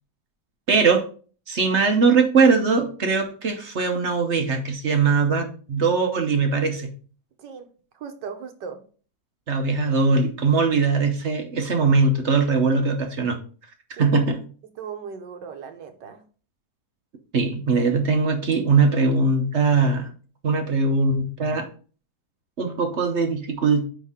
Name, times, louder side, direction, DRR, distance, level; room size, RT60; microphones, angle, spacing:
voice 1, 0.7-1.1 1.5-6.9 9.5-13.4 14.0-14.4 17.3-20.1 20.4-21.7 22.6-23.8, right 4 dB, 50° right, 4 dB, 1.1 m, -21 dB
voice 2, 7.9-8.8 14.0-14.3 14.8-16.2, right 6 dB, 90° right, 7 dB, 1.6 m, -37 dB
9.6 x 3.7 x 3.6 m, 0.40 s
omnidirectional pair, 1.8 m